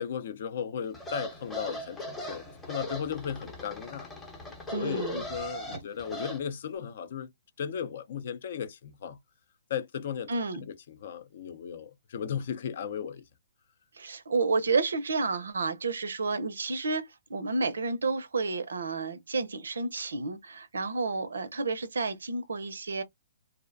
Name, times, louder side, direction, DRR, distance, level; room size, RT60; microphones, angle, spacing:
voice 1, 0.0-4.1 4.8-7.3 7.6-9.2 9.7-13.2, left 8 dB, 60° left, 0.4 m, -36 dB
sound 1, 0.9-6.4, left 1 dB, 10° left, 0.7 m, -38 dB
voice 2, 4.7-5.2 5.7-5.8 10.3-10.7 13.9-23.0, right 3 dB, 80° right, 0.5 m, -30 dB
2.4 x 2.1 x 2.5 m
hypercardioid pair, 140°, 0 cm